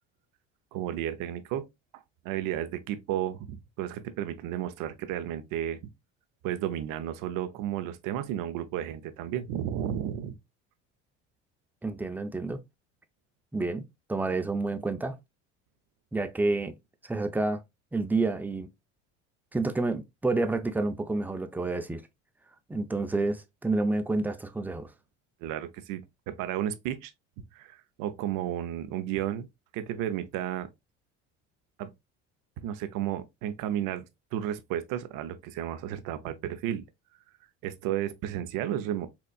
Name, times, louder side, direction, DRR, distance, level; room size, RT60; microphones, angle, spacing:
voice 1, 0.7-1.7 1.9-5.8 6.4-10.4 25.4-27.1 27.5-29.5 29.7-30.7 31.8-31.9 32.6-34.1 34.3-36.8 37.6-39.1, right 11 dB, 65° right, 0.6 m, -33 dB
voice 2, 11.8-12.6 13.5-15.2 16.1-16.8 17.0-17.6 17.9-18.7 19.5-22.0 22.7-24.9, right 3 dB, 5° right, 0.5 m, -29 dB
4.4 x 2.5 x 2.3 m
supercardioid pair, 75°, 36 cm